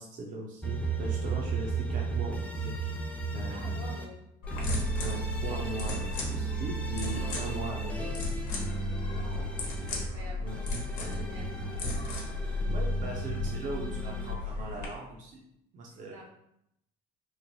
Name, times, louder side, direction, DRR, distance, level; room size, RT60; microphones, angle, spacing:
voice 1, 0.0-2.9 3.3-3.7 5.0-8.2 10.4-10.6 12.4-15.4 15.7-16.2, right 2 dB, 50° right, -2 dB, 0.6 m, -40 dB
sound 1, 0.6-4.0 4.5-10.0 10.5-14.3, right 4 dB, 10° left, 0.6 m, -35 dB
voice 2, 3.5-4.2 9.1-9.5 9.9-11.5 15.9-16.2, right 2 dB, 80° right, -2 dB, 1.2 m, -48 dB
sound 2, 4.4-14.8, left 3 dB, 75° left, 1.0 m, -34 dB
3.1 x 2.0 x 3.9 m, 0.77 s
supercardioid pair, 95°, 17 cm